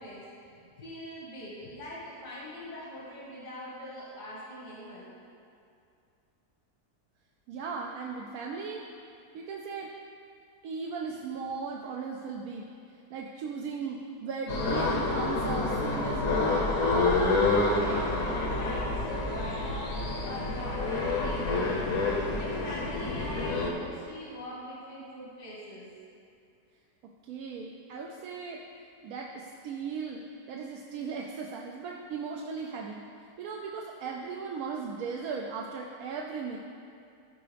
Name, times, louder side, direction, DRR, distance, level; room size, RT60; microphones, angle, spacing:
voice 1, 0.0-5.1 17.6-22.0 22.3-25.9, left 1 dB, 75° left, -6 dB, 2.2 m, -42 dB
voice 2, 7.5-8.8 9.3-9.9 10.6-12.7 13.1-16.8 27.3-28.6 29.0-30.2 30.5-33.0 33.4-36.6, right 5 dB, 70° right, -1 dB, 1.0 m, -37 dB
sound 1, 14.5-23.7, left 2 dB, 60° left, 1.2 m, -28 dB
14.5 x 4.8 x 3.4 m, 2.4 s
omnidirectional pair, 1.7 m